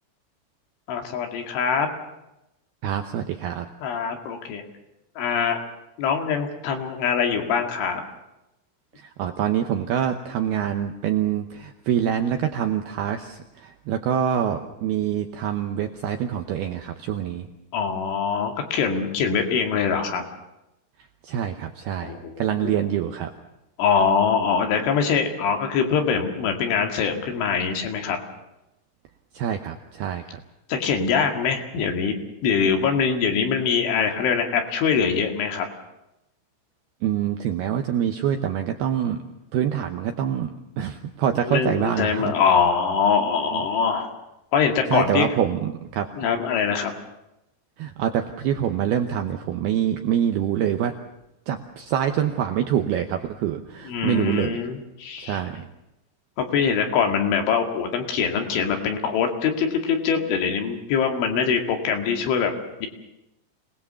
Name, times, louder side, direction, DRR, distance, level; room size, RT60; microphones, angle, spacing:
voice 1, 0.9-1.9 3.8-4.6 5.2-5.6 6.0-8.0 17.7-20.2 22.0-22.9 23.8-28.2 30.7-32.2 32.4-35.7 41.4-44.1 44.5-45.3 46.1-46.9 53.8-55.4 56.4-62.5 62.8-62.9, left 6 dB, 70° left, 3 dB, 4.6 m, -23 dB
voice 2, 2.8-3.7 9.0-17.5 21.2-23.3 29.3-30.4 37.0-39.2 39.5-42.3 43.5-43.6 44.9-46.1 47.8-50.9 51.5-54.6 55.2-55.7, right 9 dB, 85° right, 5 dB, 2.3 m, -25 dB
27.0 x 19.5 x 7.0 m, 0.91 s
omnidirectional pair, 5.8 m